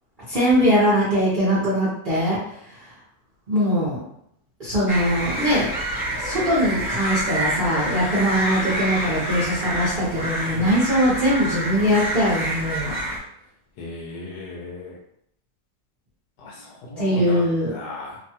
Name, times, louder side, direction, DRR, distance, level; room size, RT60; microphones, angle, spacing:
voice 1, 0.3-2.9 3.5-4.0 4.6-5.7 6.1-13.0 17.0-17.8, equal, 45° right, -9 dB, 0.7 m, -21 dB
sound 1, 4.9-13.2, right 1 dB, 15° right, 1.1 m, -28 dB
voice 2, 13.8-15.0 16.4-17.4 17.7-18.2, left 3 dB, 90° left, -1 dB, 1.2 m, -36 dB
2.9 x 2.2 x 2.8 m, 0.72 s
omnidirectional pair, 1.7 m